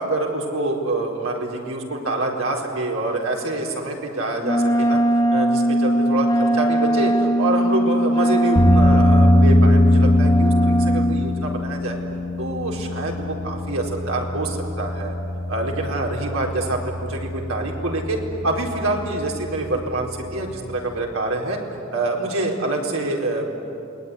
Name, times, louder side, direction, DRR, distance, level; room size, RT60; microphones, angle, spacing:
voice 1, 0.0-5.0 5.3-12.0 12.4-15.1 15.5-21.6 21.9-23.4, right 2 dB, 85° right, -1 dB, 4.4 m, -26 dB
Wind instrument woodwind instrument, 4.4-11.2, right 1 dB, 20° left, 1.8 m, -20 dB
sound 1, 8.5-21.1, left 1 dB, 35° left, 5.4 m, -22 dB
28.5 x 20.5 x 9.9 m, 2.7 s
head